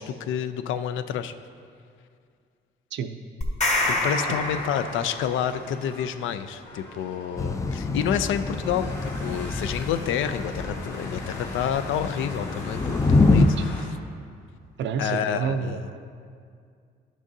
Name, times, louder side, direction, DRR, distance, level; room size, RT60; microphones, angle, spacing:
voice 1, 0.0-1.4 3.9-13.9 15.0-15.8, left 9 dB, 80° left, 11 dB, 0.4 m, -29 dB
sound 1, 3.4-5.4, left 2 dB, 35° left, 1.3 m, -26 dB
sound 2, 3.7-13.8, left 1 dB, 60° left, 2.1 m, -41 dB
Thunder / Rain, 7.4-13.5, left 3 dB, 15° left, 0.4 m, -25 dB
voice 2, 14.8-16.0, right 6 dB, 65° right, 8 dB, 0.5 m, -29 dB
11.5 x 6.2 x 2.7 m, 2.2 s
cardioid pair, 90°, 20 cm